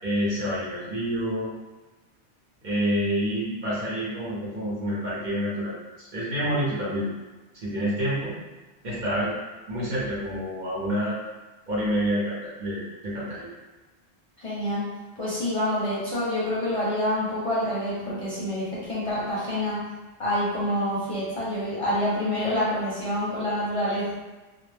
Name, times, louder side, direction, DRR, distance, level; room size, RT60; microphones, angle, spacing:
voice 1, 0.0-1.5 2.6-7.1 7.5-8.3 8.8-9.3 9.7-11.2 11.7-13.5, equal, 50° right, -8 dB, 0.8 m, -28 dB
voice 2, 14.4-14.8 15.2-19.8 20.2-24.2, left 1 dB, 35° left, -9 dB, 0.7 m, -27 dB
2.3 x 2.0 x 3.2 m, 1.2 s
omnidirectional pair, 1.1 m